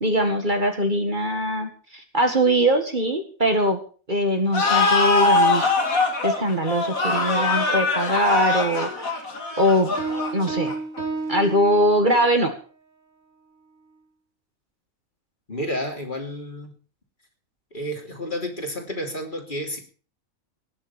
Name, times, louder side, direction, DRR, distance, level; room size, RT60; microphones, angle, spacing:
voice 1, 0.0-3.8 4.1-5.8 6.2-9.2 9.6-9.9 10.3-10.8 11.3-12.5, equal, 35° right, 5 dB, 2.1 m, -22 dB
sound 1, 4.5-11.0, left 3 dB, 85° left, 2.7 m, -22 dB
Piano, 10.0-12.3, right 3 dB, 75° right, 4.4 m, -31 dB
voice 2, 15.5-16.7 17.7-19.8, equal, 35° left, 3 dB, 3.4 m, -30 dB
19.0 x 7.3 x 7.3 m, 0.39 s
omnidirectional pair, 1.4 m